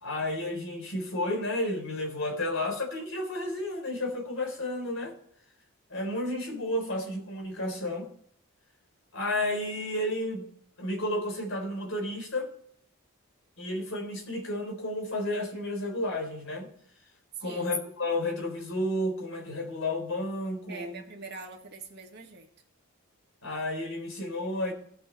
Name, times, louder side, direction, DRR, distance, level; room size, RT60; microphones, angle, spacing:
voice 1, 0.0-5.1 5.9-8.1 9.1-10.5 10.8-12.5 13.6-16.7 17.4-21.0 23.4-24.7, left 1 dB, 60° left, 3.9 m, -32 dB
voice 2, 17.4-17.7 20.7-22.5, right 4 dB, 50° right, 1.8 m, -43 dB
17.0 x 6.1 x 4.1 m
head